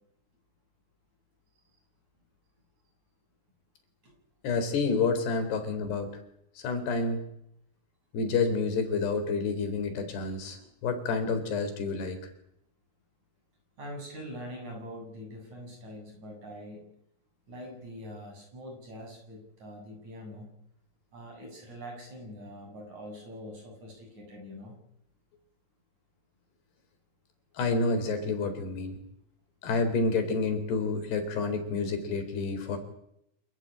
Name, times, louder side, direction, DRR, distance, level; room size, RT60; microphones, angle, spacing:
voice 1, 4.4-6.2 6.6-7.2 8.1-12.2 27.6-29.0 29.6-32.8, left 4 dB, 85° left, 8 dB, 5.9 m, -29 dB
voice 2, 13.8-16.9 17.5-20.5 21.1-24.8, equal, 45° right, 2 dB, 9.3 m, -44 dB
27.5 x 15.0 x 9.9 m, 0.75 s
omnidirectional pair, 4.6 m